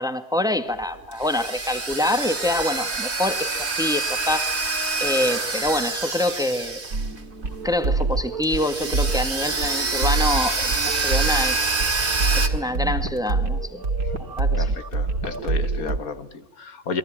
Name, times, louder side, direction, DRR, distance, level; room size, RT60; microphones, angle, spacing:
voice 1, 0.0-4.5 5.0-6.8 7.6-11.6 12.3-13.8 14.4-14.7, left 1 dB, 5° right, 8 dB, 1.7 m, -26 dB
sound 1, 0.8-7.4 7.7-7.8 8.4-12.5, right 3 dB, 45° right, 2.7 m, -26 dB
sound 2, 6.9-16.0, right 3 dB, 85° right, 3.0 m, -26 dB
voice 2, 14.6-17.0, left 5 dB, 70° left, 10 dB, 1.9 m, -33 dB
28.5 x 22.0 x 8.8 m, 0.79 s
omnidirectional pair, 1.5 m